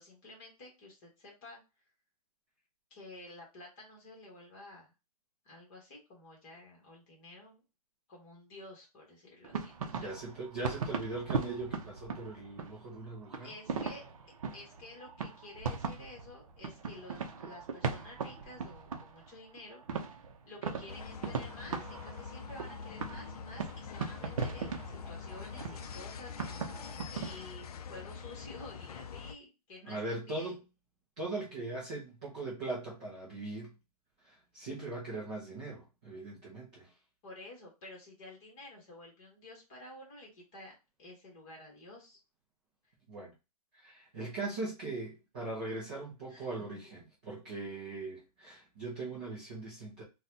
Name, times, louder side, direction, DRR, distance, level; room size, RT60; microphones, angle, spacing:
voice 1, 0.0-1.6 2.9-4.9 5.4-7.6 8.1-10.1 13.4-14.0 14.5-20.1 20.5-30.0 30.3-30.6 37.2-42.2 46.3-46.7, left 2 dB, 20° left, 1.1 m, -51 dB
sound 1, 9.4-13.0 13.3-19.3 19.6-27.4, right 5 dB, 60° right, 0.6 m, -39 dB
voice 2, 9.9-13.5 29.9-30.6 31.2-33.7 34.2-36.9 43.1-43.3 43.7-50.0, right 2 dB, 10° right, 0.3 m, -40 dB
sound 2, 20.9-29.3, left 6 dB, 70° left, 0.4 m, -45 dB
3.9 x 2.2 x 2.6 m
hypercardioid pair, 170°, 20 cm